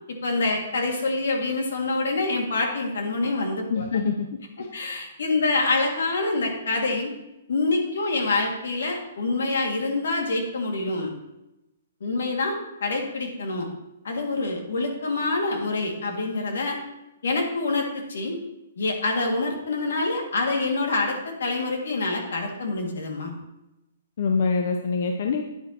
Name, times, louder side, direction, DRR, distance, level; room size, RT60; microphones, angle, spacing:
voice 1, 0.1-3.8 4.6-7.1 7.5-11.1 12.0-13.7 14.0-16.8 17.2-18.4 18.8-23.3, left 3 dB, 80° left, 1 dB, 2.2 m, -26 dB
voice 2, 3.7-4.3 24.2-25.5, left 5 dB, 50° left, 4 dB, 0.7 m, -24 dB
9.6 x 8.8 x 3.0 m, 0.91 s
hypercardioid pair, 175°, 0 cm